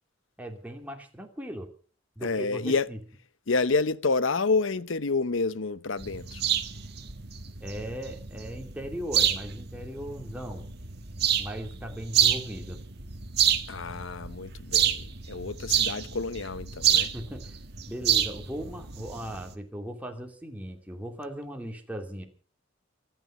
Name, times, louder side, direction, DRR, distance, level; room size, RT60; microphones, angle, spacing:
voice 1, 0.4-1.7 2.2-3.0 7.6-10.6 11.4-12.8 17.1-17.6 17.9-22.3, equal, 10° right, 2.8 m, -38 dB
voice 2, 2.2-2.9 3.5-6.4 13.7-17.1, left 4 dB, 80° left, 0.9 m, -28 dB
sound 1, 6.0-19.5, right 9 dB, 55° right, 1.6 m, -29 dB
25.5 x 9.3 x 5.8 m
head